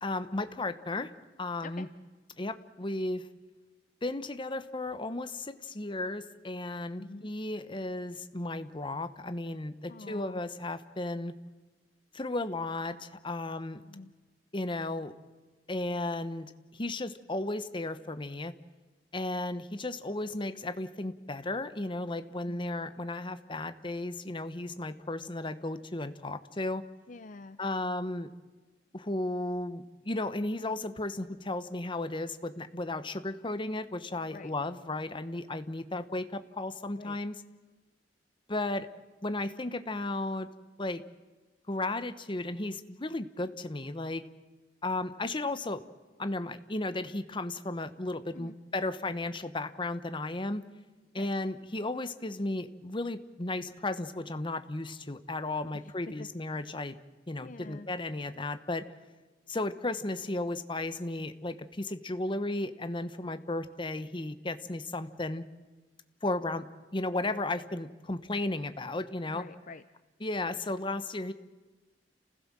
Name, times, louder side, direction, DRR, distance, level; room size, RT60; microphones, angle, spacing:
voice 1, 0.0-1.1 1.4-1.9 2.4-3.2 4.0-11.3 12.1-13.8 14.5-15.1 15.7-18.5 19.1-26.8 27.6-28.3 28.9-37.4 38.5-38.9 39.2-40.5 40.8-41.0 41.7-44.2 44.8-45.8 46.2-50.6 51.1-57.0 57.3-58.9 59.5-65.4 66.2-66.6 66.9-69.4 70.2-71.3, left 2 dB, 30° left, 11 dB, 1.0 m, -34 dB
voice 2, 9.9-10.4 13.8-14.1 22.4-22.7 27.1-27.6 34.3-34.5 36.9-37.2 48.3-48.6 51.2-51.3 55.7-55.9 56.2-56.3 57.4-57.9 69.3-69.8, left 3 dB, 45° left, 12 dB, 0.6 m, -46 dB
29.5 x 16.0 x 7.5 m, 1.3 s
head